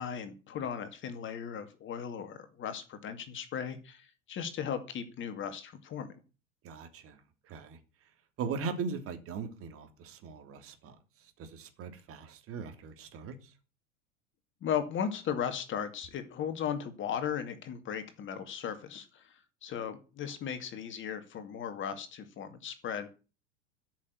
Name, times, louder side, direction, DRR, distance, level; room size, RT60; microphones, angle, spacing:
voice 1, 0.0-6.1 14.6-19.4 19.6-23.1, left 8 dB, 30° left, 2.3 m, -36 dB
voice 2, 6.6-7.2 7.4-7.8 8.4-10.9 11.4-13.3, right 5 dB, 35° right, 2.9 m, -39 dB
13.5 x 6.5 x 9.7 m
figure-of-eight pair, 80°, 37 cm